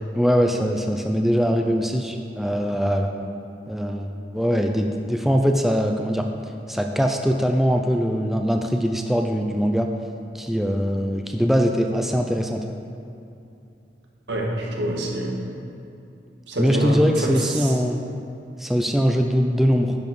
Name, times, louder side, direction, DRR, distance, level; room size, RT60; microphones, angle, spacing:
voice 1, 0.1-3.1 3.7-6.2 6.7-9.9 10.3-12.6 16.6-18.0 18.6-20.0, equal, ahead, 3 dB, 0.4 m, -22 dB
voice 2, 14.3-15.3 16.5-17.7, right 1 dB, 80° right, -1 dB, 1.6 m, -26 dB
10.5 x 7.1 x 4.7 m, 2.7 s
head